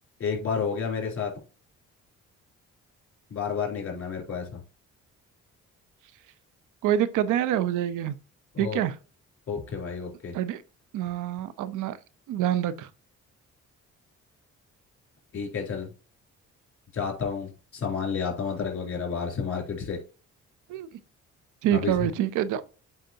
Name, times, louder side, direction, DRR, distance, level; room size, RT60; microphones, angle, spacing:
voice 1, 0.2-1.3 3.3-4.6 8.5-8.8 9.5-10.3 15.3-15.9 16.9-20.0 21.7-22.1, left 6 dB, 45° left, 3.7 m, -30 dB
voice 2, 6.8-8.2 8.6-8.9 10.3-10.6 10.9-12.0 12.3-12.9 20.7-20.9 21.6-22.6, right 11 dB, 85° right, 0.7 m, -26 dB
7.8 x 5.0 x 2.8 m
cardioid pair, 90°, 30 cm